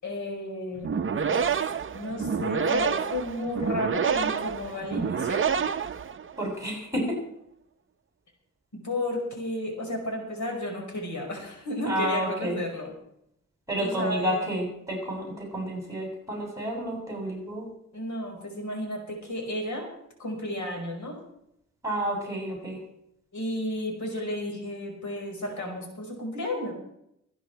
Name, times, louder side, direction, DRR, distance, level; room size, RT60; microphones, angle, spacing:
voice 1, 0.0-1.4 1.9-5.4 8.7-12.9 13.8-14.5 17.9-19.9 20.2-21.2 23.3-26.7, left 1 dB, 70° left, 1 dB, 5.2 m, -33 dB
sound 1, 0.8-6.5, right 6 dB, 40° right, 0.7 m, -28 dB
voice 2, 6.4-7.2 11.9-12.6 13.7-17.7 21.8-22.8, equal, 10° right, -1 dB, 7.5 m, -30 dB
25.0 x 10.0 x 4.5 m, 0.76 s
wide cardioid pair, 150°, 30 cm